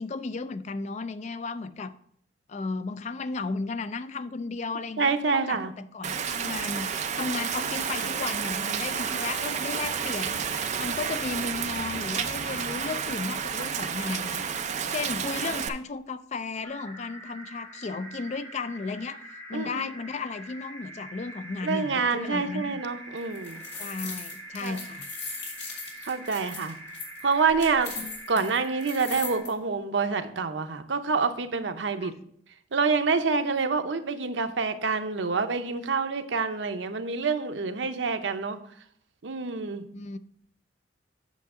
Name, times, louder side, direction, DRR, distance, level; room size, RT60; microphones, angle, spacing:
voice 1, 0.0-2.0 2.5-10.5 10.8-14.4 14.9-19.2 19.5-22.8 23.8-25.1 28.0-28.5 32.0-32.1 39.9-40.2, left 4 dB, 40° left, 0.4 m, -34 dB
voice 2, 5.0-5.7 19.5-19.9 21.6-23.6 24.6-24.8 26.0-26.7 27.2-27.9 28.3-32.1 32.7-38.6 39.2-39.9, right 4 dB, 85° right, 0.7 m, -27 dB
Rain, 6.0-15.7, right 7 dB, 40° right, 0.5 m, -31 dB
sound 1, 16.6-29.4, right 1 dB, 20° left, 3.0 m, -44 dB
sound 2, 23.2-29.5, left 4 dB, 65° left, 2.3 m, -39 dB
8.4 x 6.6 x 3.7 m
head